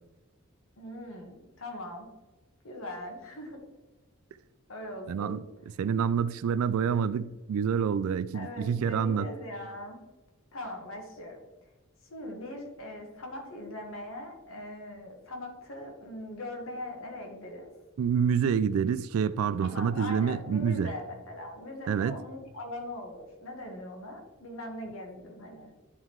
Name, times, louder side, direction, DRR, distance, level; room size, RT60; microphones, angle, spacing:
voice 1, 0.8-2.1 2.6-3.6 4.7-5.4 8.3-10.0 10.5-11.4 12.1-17.7 19.6-25.7, left 1 dB, 80° left, 1.7 m, -41 dB
voice 2, 5.1-5.4 5.8-9.3 18.0-20.9 21.9-22.2, right 7 dB, 85° right, 0.3 m, -27 dB
9.8 x 3.7 x 4.6 m
head